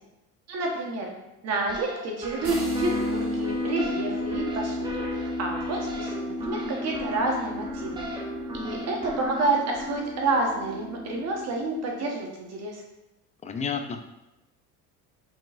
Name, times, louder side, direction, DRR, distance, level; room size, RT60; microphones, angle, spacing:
voice 1, 0.5-1.1 1.4-8.0 8.5-12.8, right 2 dB, 50° right, 0 dB, 1.1 m, -29 dB
sound 1, 1.7-10.0, equal, 15° right, 0.7 m, -38 dB
sound 2, 2.4-12.1, left 1 dB, 70° right, 1.2 m, -33 dB
voice 2, 13.4-14.0, left 6 dB, 20° left, 6 dB, 0.3 m, -30 dB
5.4 x 3.0 x 2.5 m, 0.95 s
cardioid pair, 110°, 34 cm